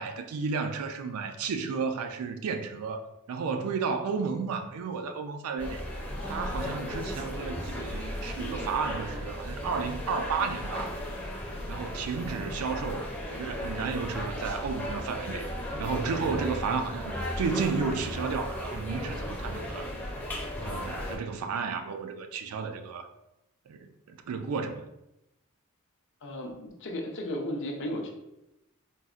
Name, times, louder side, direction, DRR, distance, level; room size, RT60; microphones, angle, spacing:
voice 1, 0.0-5.8 6.2-10.9 11.7-13.1 13.4-15.5 15.8-19.9 20.6-23.1 23.7-24.9, right 5 dB, 70° right, 0.3 m, -32 dB
sound 1, 5.6-21.2, equal, 5° left, 0.5 m, -35 dB
voice 2, 26.2-28.1, left 1 dB, 55° left, 0.5 m, -34 dB
3.9 x 2.0 x 2.4 m
head